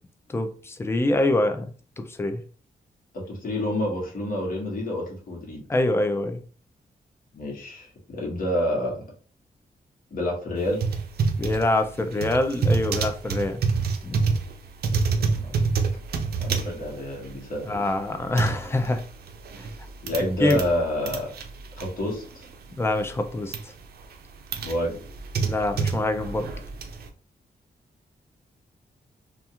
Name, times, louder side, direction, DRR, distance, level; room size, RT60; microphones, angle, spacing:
voice 1, 0.3-1.6 2.0-2.4 5.7-6.4 11.4-13.6 14.0-14.3 17.7-19.0 19.6-19.7 20.4-20.6 22.8-23.7 25.4-26.5, left 1 dB, 15° left, 7 dB, 0.4 m, -25 dB
voice 2, 3.3-5.6 7.3-9.0 10.1-10.8 15.0-15.7 16.4-17.8 20.0-21.3 21.8-22.5 24.6-25.0, left 1 dB, 65° left, -2 dB, 1.1 m, -28 dB
sound 1, 10.6-20.7 21.0-22.7 23.0-23.6 24.1-27.1, right 4 dB, 75° right, 0.5 m, -28 dB
2.4 x 2.4 x 2.8 m, 0.40 s
wide cardioid pair, 115°, 16 cm